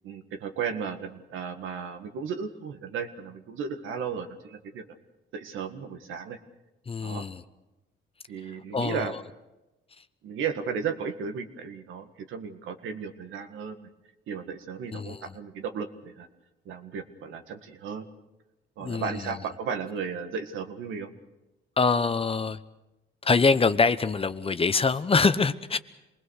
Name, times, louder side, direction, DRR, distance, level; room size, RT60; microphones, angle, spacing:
voice 1, 0.0-4.8 5.3-6.4 7.0-7.2 8.3-9.1 10.2-13.9 14.3-16.3 16.7-18.1 18.8-21.1, right 6 dB, 85° right, 7 dB, 1.8 m, -35 dB
voice 2, 6.9-7.4 8.7-9.2 14.9-15.4 18.8-19.4 21.8-22.6 23.2-25.8, left 4 dB, 30° left, 12 dB, 1.0 m, -24 dB
27.0 x 20.0 x 6.5 m, 1.0 s
cardioid pair, 90°, 20 cm